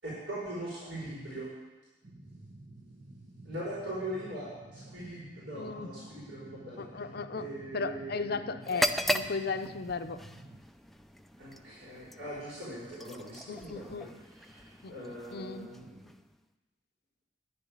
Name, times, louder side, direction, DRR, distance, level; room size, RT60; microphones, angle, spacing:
voice 1, 0.0-1.5 3.4-8.5 11.4-14.1 14.3-16.1, right 1 dB, 85° right, -8 dB, 5.0 m, -41 dB
sound 1, 2.0-10.6, right 2 dB, 55° right, 1.1 m, -51 dB
voice 2, 5.5-5.9 6.8-7.5 7.7-10.2 13.5-14.1 14.8-15.7, left 4 dB, 60° left, 10 dB, 0.6 m, -36 dB
sound 2, 8.6-16.4, equal, ahead, 0.4 m, -37 dB
11.0 x 7.0 x 9.5 m, 1.2 s
head